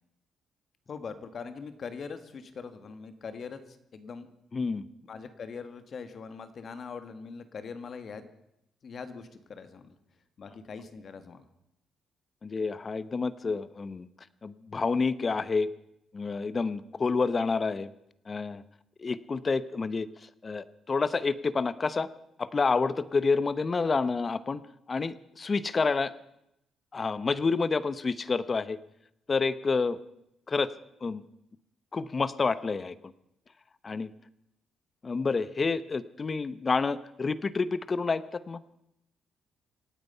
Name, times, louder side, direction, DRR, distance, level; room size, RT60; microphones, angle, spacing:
voice 1, 0.9-4.3 5.1-8.2 8.8-10.0 10.4-11.5, left 5 dB, 50° left, 10 dB, 1.6 m, -42 dB
voice 2, 4.5-4.9 12.4-14.1 14.4-15.7 16.1-17.9 18.3-18.6 19.0-22.1 22.4-24.6 24.9-26.1 26.9-28.8 29.3-30.0 30.5-30.7 31.0-31.2 31.9-32.9 33.8-34.1 35.0-38.6, left 4 dB, 35° left, 16 dB, 0.8 m, -29 dB
26.5 x 9.1 x 5.6 m, 0.81 s
cardioid pair, 90°, 0 cm